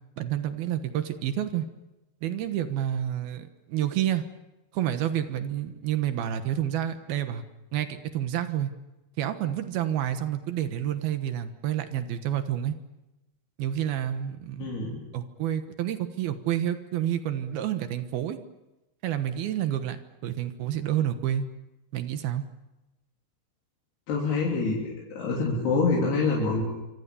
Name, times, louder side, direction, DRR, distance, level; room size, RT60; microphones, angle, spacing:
voice 1, 0.2-1.7 2.2-4.2 4.7-7.4 7.7-8.7 9.2-12.8 13.6-14.7 15.1-18.4 19.0-21.5 21.9-22.4, right 11 dB, 75° right, 9 dB, 3.1 m, -29 dB
voice 2, 14.6-15.0 24.1-24.8 25.2-26.6, left 4 dB, 85° left, -4 dB, 5.5 m, -25 dB
26.0 x 25.5 x 7.0 m, 1.0 s
omnidirectional pair, 4.5 m